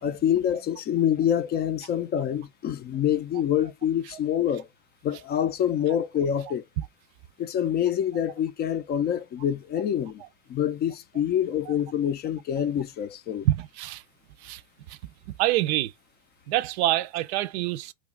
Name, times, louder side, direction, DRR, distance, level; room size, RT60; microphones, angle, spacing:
voice 1, 0.0-4.7 5.0-6.7 7.4-10.2 10.5-13.5, left 9 dB, 25° left, 0.4 m, -26 dB
voice 2, 13.4-14.0 14.4-14.6 14.9-15.0 15.4-15.9 16.5-17.9, right 15 dB, 60° right, 0.5 m, -26 dB
3.0 x 2.3 x 3.6 m
hypercardioid pair, 110°, 37 cm